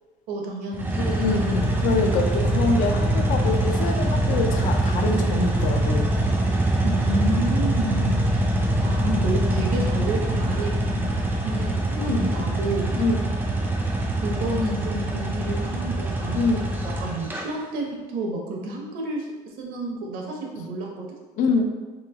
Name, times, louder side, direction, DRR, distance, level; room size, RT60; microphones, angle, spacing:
voice 1, 0.3-1.1 6.8-8.5 8.8-12.9 14.1-19.3 19.6-21.2, right 2 dB, 70° right, 0 dB, 0.9 m, -30 dB
sound 1, 0.7-17.4, right 1 dB, 15° right, 0.4 m, -24 dB
voice 2, 1.0-6.1 12.0-12.3 13.0-13.3 16.3-16.7 21.4-21.6, left 3 dB, 60° left, 4 dB, 0.5 m, -25 dB
3.0 x 2.9 x 3.6 m, 1.2 s
cardioid pair, 160°, 15 cm